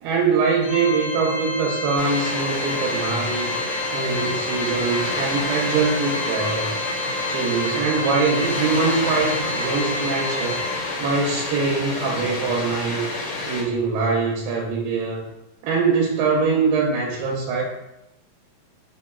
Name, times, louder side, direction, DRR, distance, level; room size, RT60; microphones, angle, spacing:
voice 1, 0.0-3.6 3.9-6.7 7.3-10.6 11.0-13.1 13.5-15.2 15.6-17.8, right 4 dB, 85° right, -2 dB, 2.2 m, -23 dB
Organ, 0.6-11.3, left 1 dB, 90° left, 1.6 m, -29 dB
Water, 2.0-13.6, left 2 dB, 70° left, 2.0 m, -29 dB
5.5 x 2.2 x 2.2 m, 0.89 s
omnidirectional pair, 4.0 m